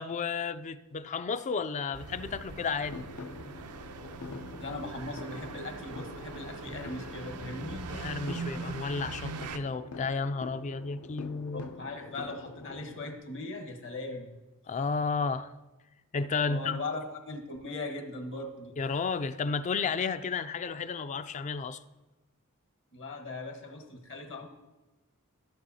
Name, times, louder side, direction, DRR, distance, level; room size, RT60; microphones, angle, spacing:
voice 1, 0.0-3.0 7.9-11.7 14.7-15.5 16.1-16.8 18.8-21.8, left 5 dB, 35° left, 0.3 m, -32 dB
sound 1, 1.9-9.6, right 4 dB, 85° right, 0.5 m, -41 dB
sound 2, 2.9-13.1, left 3 dB, 80° left, 0.6 m, -46 dB
voice 2, 4.6-7.9 11.5-14.4 16.4-18.8 22.9-24.5, left 2 dB, 60° left, 1.1 m, -39 dB
14.0 x 7.0 x 2.8 m
head